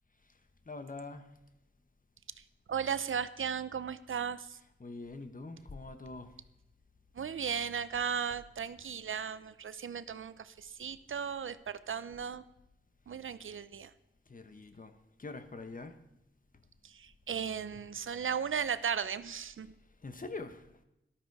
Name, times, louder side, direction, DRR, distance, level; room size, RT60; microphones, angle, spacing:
voice 1, 0.7-1.3 4.8-6.3 14.3-14.9 15.2-16.0 20.0-20.7, left 3 dB, 45° left, 9 dB, 1.3 m, -44 dB
voice 2, 2.7-4.6 7.1-12.4 13.1-13.9 16.8-19.7, right 7 dB, 80° right, 14 dB, 0.6 m, -36 dB
13.5 x 12.0 x 4.8 m, 0.86 s
wide cardioid pair, 60°, 20 cm